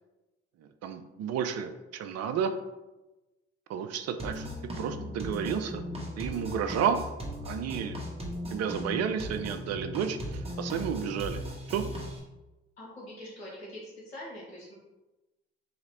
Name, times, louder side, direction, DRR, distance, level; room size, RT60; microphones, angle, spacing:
voice 1, 0.8-2.5 3.7-4.5 4.8-5.8 6.2-7.0 7.4-8.1 8.5-11.4 11.7-11.9, right 7 dB, 60° right, 9 dB, 0.5 m, -31 dB
sound 1, 4.2-12.2, equal, 20° right, 1.4 m, -37 dB
voice 2, 12.8-14.7, left 1 dB, 90° left, -6 dB, 1.4 m, -44 dB
3.9 x 3.0 x 4.1 m, 1.0 s
hypercardioid pair, 50°, 30 cm